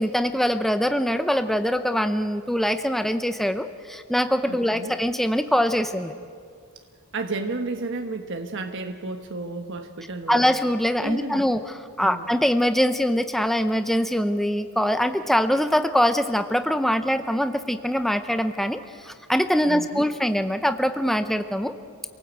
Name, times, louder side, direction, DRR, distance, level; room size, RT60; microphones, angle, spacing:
voice 1, 0.0-6.1 10.3-21.7, equal, ahead, 9 dB, 0.6 m, -23 dB
voice 2, 4.5-4.9 7.1-10.5 11.0-11.4 12.0-12.3 19.6-20.1, right 3 dB, 55° right, 5 dB, 1.2 m, -32 dB
27.5 x 18.5 x 8.3 m, 2.2 s
head